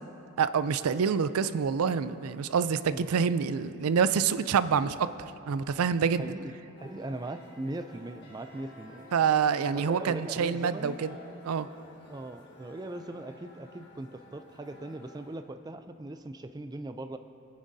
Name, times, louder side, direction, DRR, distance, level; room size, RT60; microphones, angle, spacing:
voice 1, 0.4-6.3 9.1-11.1 11.4-11.7, right 6 dB, 90° right, 14 dB, 0.4 m, -27 dB
voice 2, 6.2-9.1 9.7-10.9 12.1-17.2, right 2 dB, 20° right, 8 dB, 0.3 m, -39 dB
sound 1, 6.8-15.4, left 1 dB, 50° left, 1.6 m, -52 dB
22.0 x 9.6 x 2.7 m, 2.8 s
head